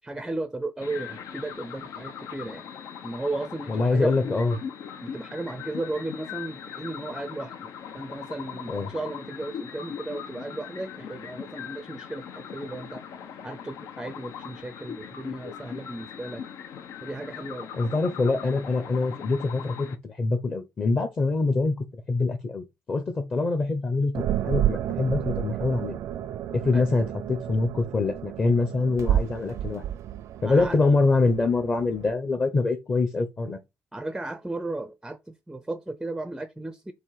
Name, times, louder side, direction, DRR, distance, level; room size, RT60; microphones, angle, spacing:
voice 1, 0.0-2.7 3.0-4.2 5.0-13.0 13.4-16.4 17.0-17.7 26.7-26.8 30.4-30.8 33.9-36.9, right 2 dB, 5° right, 0.5 m, -35 dB
sound 1, 0.8-19.9, left 8 dB, 80° left, 1.1 m, -40 dB
voice 2, 3.7-4.6 8.7-8.9 17.8-21.8 22.1-26.0 26.5-29.8 30.4-33.6, left 3 dB, 30° left, 0.9 m, -25 dB
sound 2, 24.1-32.1, right 11 dB, 65° right, 0.6 m, -30 dB
8.1 x 2.7 x 5.8 m
cardioid pair, 165°, 5 cm